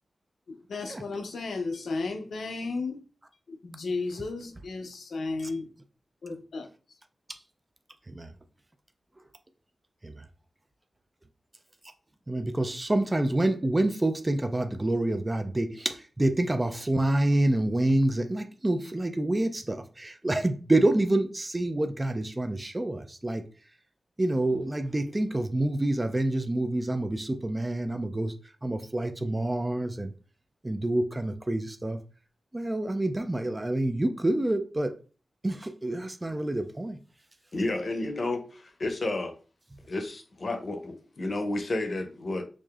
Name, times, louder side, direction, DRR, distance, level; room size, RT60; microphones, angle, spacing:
voice 1, 0.5-3.0 3.5-5.7 6.2-6.7, left 3 dB, 85° left, 0.6 m, -34 dB
voice 2, 12.3-23.4 24.2-28.4 28.6-30.1 30.6-32.0 32.5-35.0 35.4-37.0, right 1 dB, 20° right, 0.3 m, -27 dB
voice 3, 37.5-39.3 39.9-42.4, left 2 dB, 50° left, 0.7 m, -31 dB
4.7 x 2.6 x 2.3 m
wide cardioid pair, 115°, 0 cm